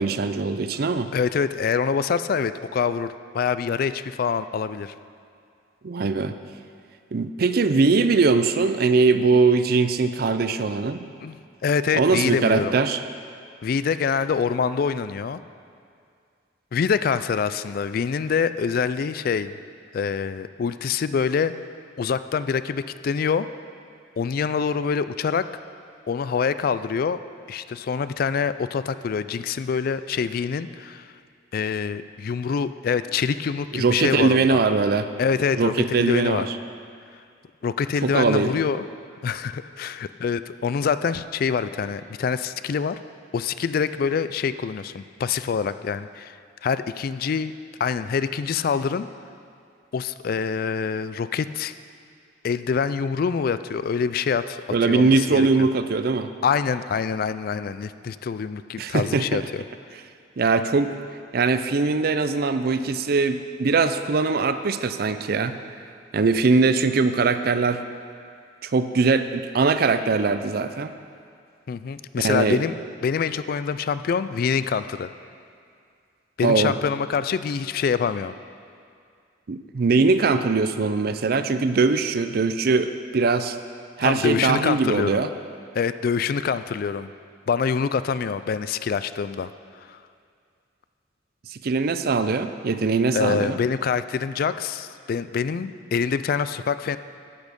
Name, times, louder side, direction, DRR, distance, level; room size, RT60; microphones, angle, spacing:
voice 1, 0.0-1.1 5.8-6.3 7.1-11.1 11.9-13.0 33.7-35.1 35.6-36.6 38.0-38.5 54.7-56.3 58.8-59.4 60.4-60.9 61.3-65.5 66.1-67.8 68.6-70.9 72.2-72.6 76.4-76.7 79.5-83.6 84.0-85.3 91.5-93.6, right 4 dB, 55° right, 10 dB, 0.5 m, -21 dB
voice 2, 1.1-4.9 11.2-11.4 11.6-12.8 13.6-15.4 16.7-19.6 19.9-21.5 22.0-23.5 24.2-25.5 26.1-27.2 27.5-31.1 31.5-34.6 35.2-36.5 37.6-38.8 39.2-43.0 43.3-46.4 46.6-47.5 47.8-49.1 49.9-51.7 52.4-55.7 56.4-59.6 71.7-72.8 73.0-75.1 76.4-78.3 84.0-85.2 85.7-87.1 87.5-89.5 89.8-90.0 93.1-97.0, left 6 dB, 50° left, 13 dB, 0.3 m, -25 dB
11.5 x 8.4 x 5.2 m, 2.3 s
head